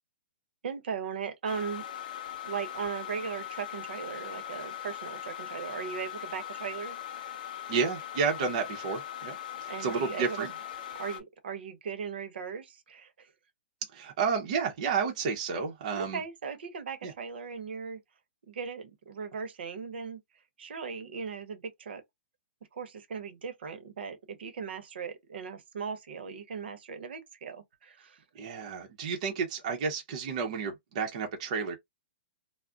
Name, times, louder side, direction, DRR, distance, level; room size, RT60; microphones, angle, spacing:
voice 1, 0.6-1.8 2.4-7.0 9.6-10.5 11.0-13.3 15.9-18.0 18.5-20.2 20.6-22.0 22.7-28.2, right 6 dB, 65° right, 0.8 m, -38 dB
sound 1, 1.4-11.2, left 11 dB, 45° left, 0.6 m, -40 dB
voice 2, 7.7-9.4 9.6-10.5 13.9-16.2 17.0-17.1 28.4-31.8, right 5 dB, 35° right, 0.6 m, -31 dB
2.3 x 2.0 x 3.6 m
hypercardioid pair, 175°, 6 cm